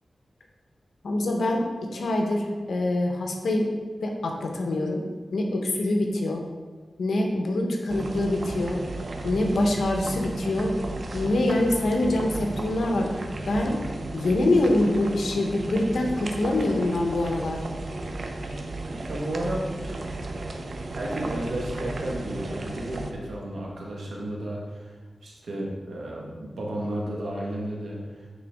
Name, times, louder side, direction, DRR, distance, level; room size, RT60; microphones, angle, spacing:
voice 1, 1.0-1.6 1.9-3.7 4.0-5.0 5.3-6.4 7.0-8.8 9.2-10.7 11.1-13.8 14.1-17.6, left 1 dB, 85° left, 1 dB, 1.0 m, -25 dB
sound 1, 7.9-23.1, right 2 dB, 60° right, 0.7 m, -34 dB
voice 2, 18.9-19.9 20.9-24.9 25.2-28.3, right 1 dB, 85° right, -3 dB, 1.4 m, -33 dB
9.2 x 3.9 x 3.6 m, 1.4 s
wide cardioid pair, 80°, 0 cm